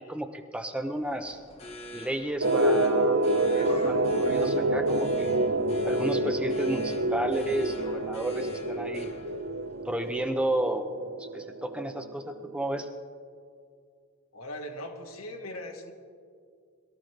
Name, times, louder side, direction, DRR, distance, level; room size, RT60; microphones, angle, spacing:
voice 1, 0.0-1.4 1.9-5.4 5.8-9.1 9.8-10.9 11.2-12.9, right 1 dB, 5° right, 6 dB, 0.6 m, -32 dB
sound 1, 0.9-10.5, left 2 dB, 30° left, 1.0 m, -45 dB
sound 2, 2.4-12.9, right 2 dB, 55° right, 0.6 m, -27 dB
voice 2, 14.3-15.9, left 1 dB, 90° left, 1 dB, 1.9 m, -39 dB
22.5 x 13.5 x 3.3 m, 2.2 s
head